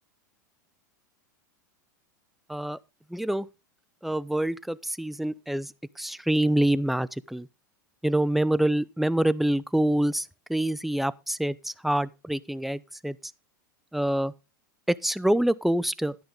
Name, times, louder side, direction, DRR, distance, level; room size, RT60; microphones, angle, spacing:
voice 1, 3.1-3.5 4.0-7.5 8.0-13.2 13.9-14.3 14.9-16.2, right 1 dB, ahead, 0.5 m, -26 dB
10.5 x 10.5 x 3.6 m
hypercardioid pair, 105°, 11 cm